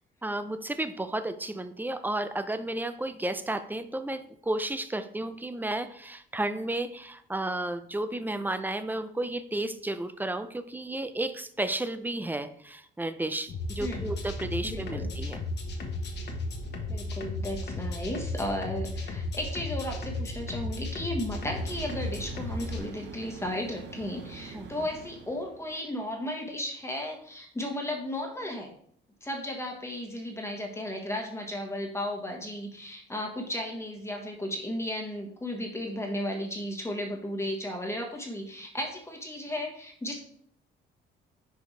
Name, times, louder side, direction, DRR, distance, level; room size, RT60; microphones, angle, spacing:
voice 1, 0.2-15.4 24.5-24.7, right 1 dB, 10° right, 11 dB, 0.5 m, -32 dB
sound 1, 13.5-22.8, left 2 dB, 55° left, 1.3 m, -34 dB
voice 2, 14.6-15.1 16.9-28.7 29.2-40.2, left 1 dB, 15° left, 1 dB, 1.3 m, -34 dB
sound 2, 21.4-25.8, right 5 dB, 65° right, 1.0 m, -45 dB
6.3 x 5.0 x 3.3 m, 0.63 s
cardioid pair, 90°, 20 cm